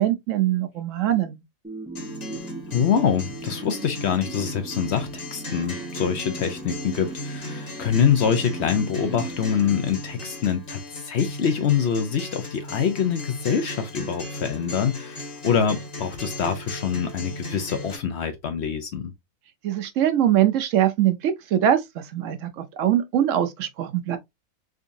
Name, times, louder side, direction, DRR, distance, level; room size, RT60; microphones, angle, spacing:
voice 1, 0.0-1.4 19.6-24.2, right 11 dB, 70° right, 0.9 m, -22 dB
sound 1, 1.6-10.7, right 3 dB, 10° right, 0.4 m, -39 dB
Acoustic guitar, 2.0-18.0, left 1 dB, 30° left, 1.2 m, -37 dB
voice 2, 2.7-19.1, left 7 dB, 60° left, 0.8 m, -25 dB
3.8 x 3.5 x 2.6 m
omnidirectional pair, 1.5 m